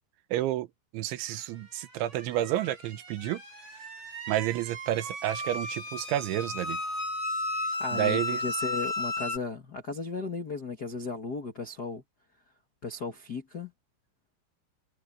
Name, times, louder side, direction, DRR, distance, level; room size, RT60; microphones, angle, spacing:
voice 1, 0.3-0.7 0.9-3.4 4.3-6.8 7.9-8.6, right 13 dB, 85° right, 3.5 m, -30 dB
sound 1, 1.8-9.4, left 2 dB, 35° right, 9.1 m, -34 dB
voice 2, 7.6-12.0 12.8-13.7, left 3 dB, 70° left, 0.9 m, -36 dB
omnidirectional pair, 5.2 m